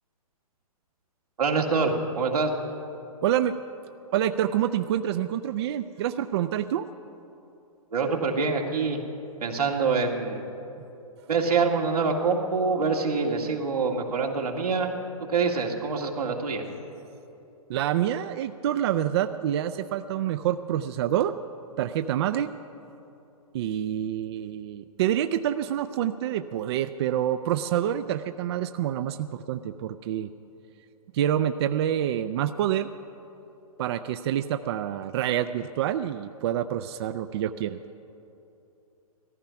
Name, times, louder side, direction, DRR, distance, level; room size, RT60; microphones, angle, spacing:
voice 1, 1.4-2.5 7.9-9.0 9.4-10.4 11.3-14.9 15.3-16.6, right 4 dB, 90° right, 1 dB, 2.2 m, -25 dB
voice 2, 3.2-3.5 4.1-6.9 17.7-21.3 21.8-22.5 23.5-30.3 31.1-32.9 33.8-37.8, right 11 dB, 45° right, 10 dB, 0.5 m, -27 dB
17.0 x 14.5 x 5.8 m, 2.9 s
hypercardioid pair, 140°, 19 cm